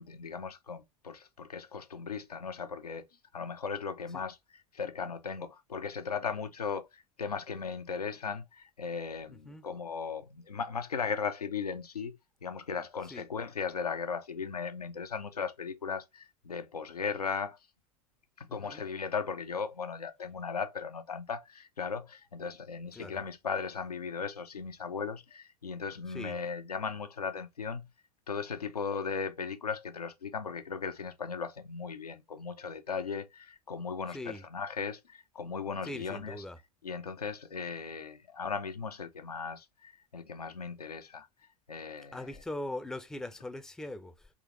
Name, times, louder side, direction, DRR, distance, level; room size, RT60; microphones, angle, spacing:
voice 1, 0.0-3.0 3.3-4.4 4.7-12.2 12.4-17.6 18.4-27.9 28.3-36.4 36.8-41.3 41.7-42.3, left 5 dB, 85° left, 0.6 m, -37 dB
voice 2, 9.3-9.6 13.1-13.2 18.5-18.8 22.9-23.2 26.1-26.4 34.1-34.4 35.8-36.6 42.1-44.3, left 1 dB, 5° left, 0.5 m, -41 dB
3.6 x 3.0 x 3.0 m
figure-of-eight pair, 85°, 19 cm